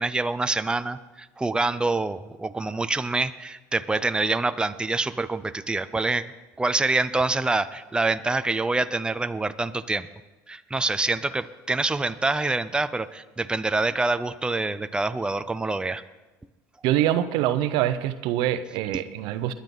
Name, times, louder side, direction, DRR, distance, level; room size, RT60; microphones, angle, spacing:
voice 1, 0.0-6.3 6.6-10.1 10.5-16.0, right 3 dB, 10° right, 11 dB, 0.6 m, -26 dB
voice 2, 16.8-19.5, right 12 dB, 70° right, 12 dB, 0.8 m, -24 dB
21.0 x 9.8 x 4.0 m, 1.1 s
supercardioid pair, 85°, 9 cm